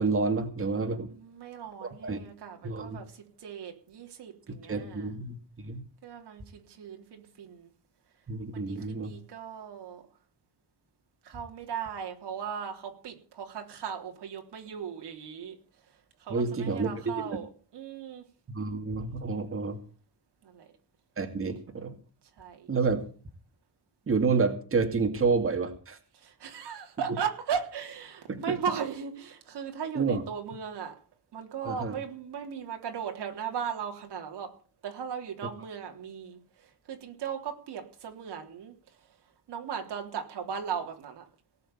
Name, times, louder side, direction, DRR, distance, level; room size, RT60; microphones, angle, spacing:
voice 1, 0.0-1.1 1.8-2.2 2.6-3.0 4.5-5.8 8.3-9.1 16.3-17.4 18.5-19.8 21.2-21.9 22.7-23.0 24.1-26.0 28.3-28.4 29.9-30.2 31.6-32.0, right 4 dB, 30° right, 5 dB, 2.3 m, -29 dB
voice 2, 1.1-5.1 6.0-7.7 8.5-10.0 11.2-15.6 16.2-18.2 20.4-20.7 22.4-22.7 26.1-30.9 31.3-34.5 34.8-38.7 39.5-41.3, right 7 dB, 90° right, 3 dB, 3.5 m, -37 dB
18.5 x 6.9 x 8.5 m, 0.39 s
wide cardioid pair, 155°, 40 cm